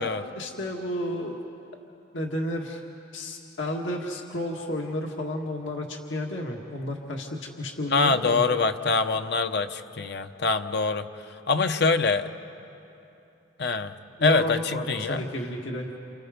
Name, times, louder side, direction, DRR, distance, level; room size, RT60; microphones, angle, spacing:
voice 1, 0.0-1.4 2.1-2.8 3.1-8.4 14.2-15.9, left 1 dB, 70° left, 1 dB, 1.9 m, -32 dB
voice 2, 7.9-12.3 13.6-15.3, left 4 dB, 55° left, 8 dB, 0.9 m, -25 dB
30.0 x 29.5 x 5.2 m, 2.8 s
head